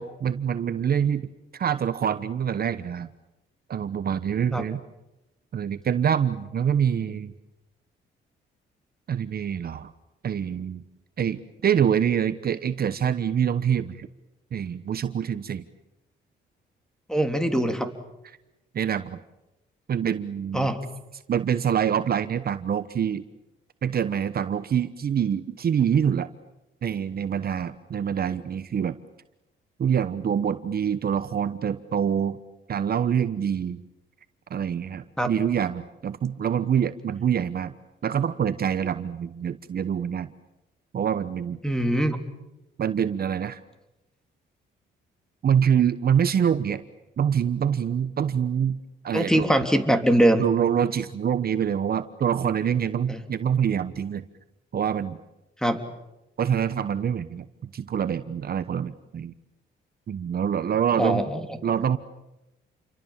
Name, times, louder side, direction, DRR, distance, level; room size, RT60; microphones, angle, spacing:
voice 1, 0.0-3.1 3.7-4.8 5.5-7.3 9.1-9.9 10.2-10.8 11.2-14.1 14.5-15.6 18.7-19.2 19.9-20.7 21.3-23.2 23.8-26.3 26.8-29.0 29.8-32.4 32.7-33.8 34.5-37.7 38.0-40.3 40.9-41.6 42.8-43.6 45.4-46.8 47.2-48.8 49.0-49.5 50.4-54.2 54.7-55.2 56.4-59.3 60.1-61.2 61.6-62.0, right 8 dB, 50° right, 12 dB, 1.1 m, -25 dB
voice 2, 17.1-17.9 20.5-20.8 35.2-35.3 41.6-42.2 49.1-50.4 53.1-53.2 55.6-55.8 61.0-61.5, right 1 dB, 5° left, 7 dB, 3.2 m, -22 dB
29.5 x 24.5 x 7.4 m, 0.96 s
cardioid pair, 90°, 20 cm